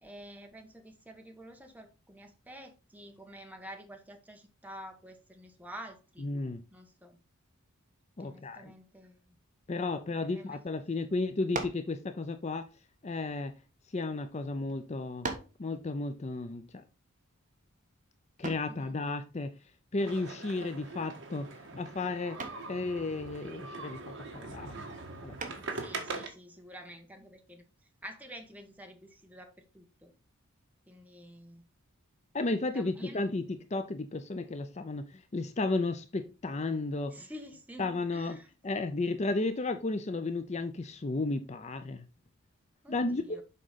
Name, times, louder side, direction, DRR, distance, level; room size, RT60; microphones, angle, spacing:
voice 1, 0.0-6.3 6.7-7.2 8.2-9.4 10.1-10.6 11.1-11.2 18.6-19.0 25.7-27.6 28.0-30.1 30.9-31.7 32.7-33.3 37.1-38.5 42.8-43.4, equal, 5° right, 1.2 m, -49 dB
voice 2, 6.2-6.6 8.2-8.7 9.7-12.7 13.0-13.5 13.9-15.3 15.6-16.8 18.4-19.5 19.9-21.5 21.7-22.4 22.7-24.0 24.3-24.7 25.2-25.6 32.3-37.3 37.8-42.1 42.9-43.4, left 3 dB, 30° left, 0.5 m, -33 dB
sound 1, 11.5-11.9 12.9-14.0 14.7-14.8 15.2-15.6 18.4-18.8 20.7-21.1 21.4-21.8 22.4-22.7 25.4-25.8, right 3 dB, 35° right, 1.3 m, -39 dB
sound 2, 20.0-26.3, right 3 dB, 60° right, 1.7 m, -42 dB
7.6 x 5.0 x 4.0 m
head